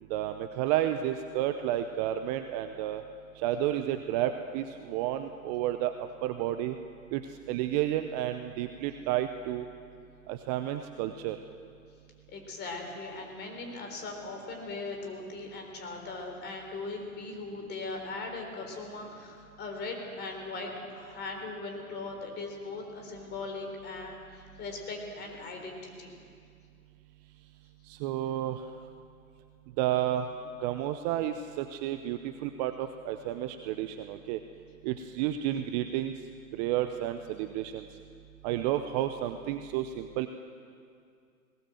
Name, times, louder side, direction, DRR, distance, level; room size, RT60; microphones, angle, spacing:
voice 1, 0.1-3.0 3.4-5.9 6.2-6.8 7.1-7.2 7.5-9.7 10.3-11.4 27.9-28.6 29.8-30.3 30.6-34.4 34.8-36.1 36.6-37.8 38.4-40.3, right 12 dB, 30° right, 8 dB, 0.7 m, -31 dB
voice 2, 12.3-26.1, left 3 dB, 25° left, 3 dB, 3.9 m, -39 dB
20.5 x 18.5 x 7.8 m, 2.3 s
hypercardioid pair, 115°, 44 cm